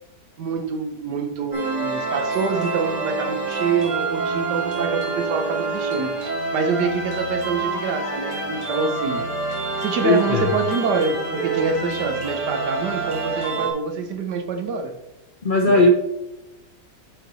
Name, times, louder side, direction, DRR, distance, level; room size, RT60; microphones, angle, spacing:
voice 1, 0.4-9.3 9.8-15.0 15.7-15.8, right 5 dB, 65° right, 1.2 m, -26 dB
sound 1, 1.5-13.7, right 3 dB, 40° right, 2.2 m, -27 dB
voice 2, 10.0-10.5 15.4-15.9, left 2 dB, 60° left, 0.5 m, -17 dB
9.1 x 4.5 x 3.9 m
omnidirectional pair, 2.2 m